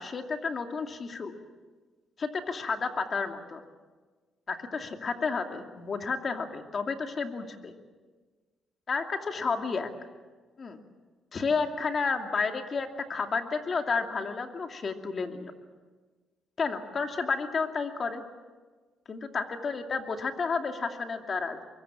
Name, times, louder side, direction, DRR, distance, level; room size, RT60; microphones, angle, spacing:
voice 1, 0.0-1.4 2.2-3.6 4.5-7.7 8.9-9.9 10.6-10.8 11.3-15.5 16.6-18.2 19.1-21.6, left 4 dB, 40° left, 4 dB, 2.5 m, -31 dB
24.0 x 22.5 x 7.5 m, 1.4 s
cardioid pair, 95°, 0 cm